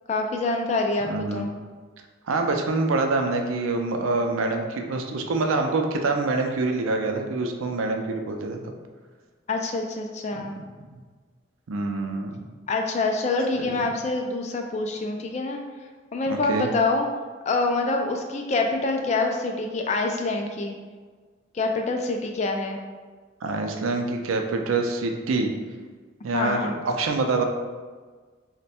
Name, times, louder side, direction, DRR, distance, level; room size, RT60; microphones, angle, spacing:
voice 1, 0.1-1.5 9.5-10.5 12.7-15.6 16.1-17.1 17.5-20.8 21.5-22.8 26.3-26.7, left 3 dB, 35° left, 3 dB, 0.3 m, -26 dB
voice 2, 1.0-1.5 2.3-8.7 10.4-10.5 10.9-11.0 11.7-12.4 13.6-13.7 16.3-16.7 23.4-25.5 26.2-27.4, right 3 dB, 85° right, 4 dB, 0.4 m, -26 dB
3.1 x 2.2 x 4.2 m, 1.4 s
head